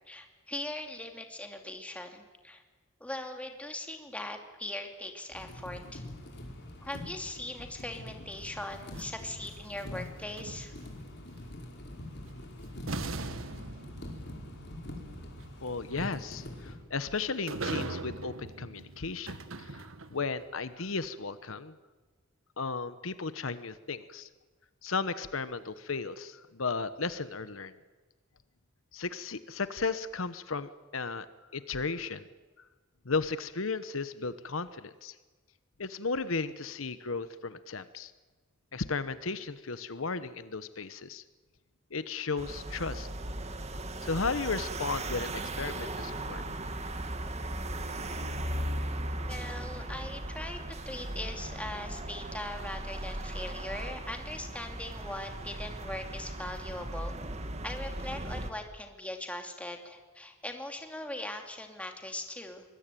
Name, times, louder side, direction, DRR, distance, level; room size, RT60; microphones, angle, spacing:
voice 1, 0.1-2.6 3.0-6.1 6.8-10.7 49.2-50.6 50.8-57.1 57.6-62.6, left 1 dB, 5° left, 4 dB, 2.8 m, -40 dB
sound 1, 5.3-16.7, left 1 dB, 55° left, 5.1 m, -44 dB
sound 2, 8.7-11.1 12.3-12.4 12.9-20.3, right 3 dB, 85° right, 1.6 m, -41 dB
voice 2, 15.6-21.7 22.6-24.3 24.8-27.7 28.9-31.3 31.5-32.3 33.0-35.1 35.8-38.1 38.7-41.2 41.9-43.1 44.0-46.4, left 4 dB, 85° left, 13 dB, 1.1 m, -35 dB
sound 3, 42.4-58.5, right 1 dB, 35° right, 1.9 m, -37 dB
24.0 x 21.0 x 9.2 m, 1.3 s
head